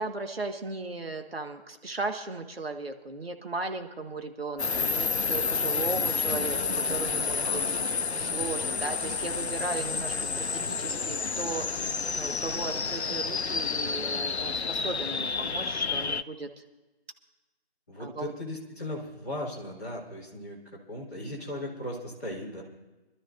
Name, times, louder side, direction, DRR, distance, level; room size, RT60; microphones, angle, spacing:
voice 1, 0.0-7.6 8.2-11.8 12.2-16.5 18.0-18.3, right 3 dB, 65° right, 5 dB, 1.7 m, -36 dB
sound 1, 4.6-16.2, left 5 dB, 85° left, 0.7 m, -30 dB
voice 2, 7.4-7.8 17.9-20.6 20.9-22.6, left 1 dB, 15° left, -8 dB, 2.4 m, -37 dB
26.0 x 12.5 x 2.6 m, 1.1 s
figure-of-eight pair, 165°, 32 cm